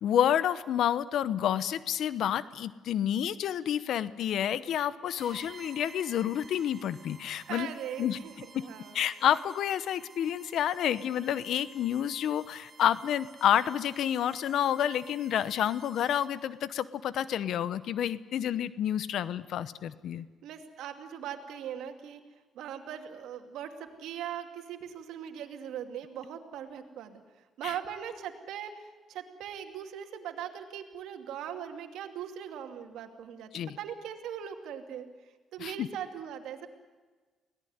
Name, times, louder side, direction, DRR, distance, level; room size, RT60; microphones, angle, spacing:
voice 1, 0.0-7.7 8.0-8.2 8.5-8.7 8.9-20.3 27.6-27.7 33.5-33.8 35.6-35.9, left 10 dB, 75° left, 16 dB, 0.9 m, -29 dB
sound 1, 5.2-16.5, right 4 dB, 35° right, 2.8 m, -53 dB
voice 2, 7.5-9.1 20.4-22.2 22.5-27.2 27.6-33.5 33.8-35.1 35.5-36.7, right 9 dB, 85° right, 5 dB, 2.5 m, -40 dB
24.0 x 18.0 x 9.5 m, 1.3 s
cardioid pair, 90°, 0 cm